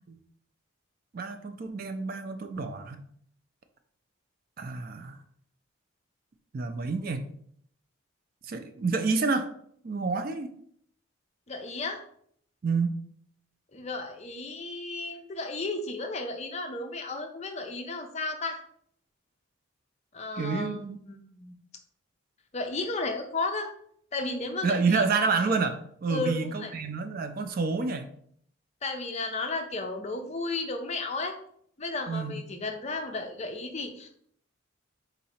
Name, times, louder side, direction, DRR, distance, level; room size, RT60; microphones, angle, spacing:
voice 1, 1.1-3.0 4.6-5.2 6.5-7.3 8.4-9.5 9.8-10.5 12.6-12.9 20.4-21.0 24.6-28.1 32.1-32.4, right 4 dB, 45° right, 8 dB, 0.4 m, -29 dB
voice 2, 11.5-12.0 13.7-18.6 20.1-21.5 22.5-23.7 24.1-25.0 26.1-26.7 28.8-31.4 31.8-34.1, left 3 dB, 30° left, 5 dB, 0.5 m, -34 dB
3.9 x 2.8 x 4.2 m, 0.64 s
head